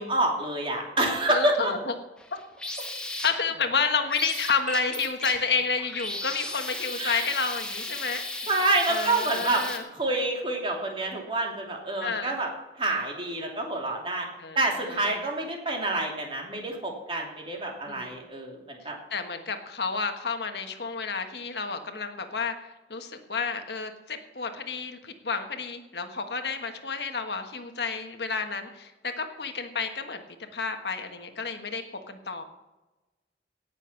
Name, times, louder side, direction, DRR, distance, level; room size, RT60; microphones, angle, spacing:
voice 1, 0.0-1.7 7.0-7.3 8.5-9.6 9.9-12.5 12.8-14.3 14.5-18.9, right 2 dB, 30° right, 0 dB, 2.9 m, -27 dB
voice 2, 1.3-1.9 2.3-2.4 3.2-8.5 8.9-9.8 12.0-12.4 14.4-14.6 14.9-15.2 17.9-18.1 19.1-22.6 22.9-30.2 30.5-32.4, left 5 dB, 70° left, 6 dB, 1.4 m, -30 dB
sound 1, 2.2-3.7 4.1-9.8, left 1 dB, 5° left, 1.3 m, -35 dB
17.5 x 7.1 x 5.9 m, 1.1 s
head